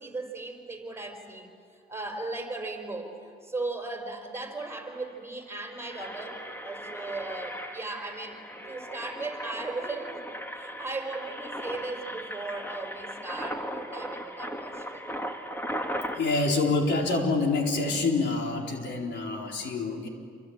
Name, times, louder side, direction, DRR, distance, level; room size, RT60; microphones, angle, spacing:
voice 1, 0.0-1.5 1.9-3.1 3.4-10.2 10.6-15.1, right 2 dB, 10° right, 4 dB, 4.6 m, -37 dB
Engine, 4.5-4.6 4.8-5.0 5.5-16.2, equal, 10° left, 2.6 m, -38 dB
voice 2, 16.2-20.1, left 3 dB, 65° left, 1 dB, 4.2 m, -26 dB
28.0 x 24.0 x 8.9 m, 2.3 s
cardioid pair, 90°, 20 cm